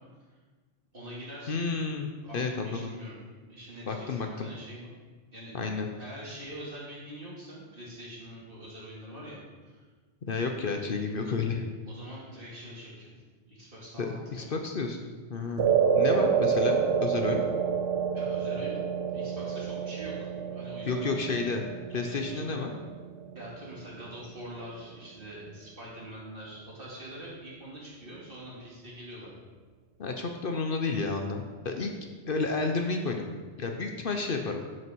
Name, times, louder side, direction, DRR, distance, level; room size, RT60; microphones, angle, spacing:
voice 1, 0.9-1.6 2.2-3.2 3.5-5.0 5.3-5.6 6.0-9.4 9.6-9.8 11.9-13.1 13.5-14.5 18.1-18.8 19.1-21.2 22.0-22.6 23.3-29.3, equal, 50° right, -6 dB, 2.9 m, -44 dB
voice 2, 1.5-2.1 2.3-2.9 3.9-4.5 5.5-5.9 10.3-11.6 14.0-17.4 20.9-21.6 21.9-22.7 30.0-31.9 32.3-33.2 33.6-34.6, left 4 dB, 55° left, 4 dB, 0.9 m, -31 dB
sound 1, 15.6-24.1, right 7 dB, 70° right, 0.8 m, -28 dB
11.0 x 6.4 x 4.6 m, 1.4 s
omnidirectional pair, 1.2 m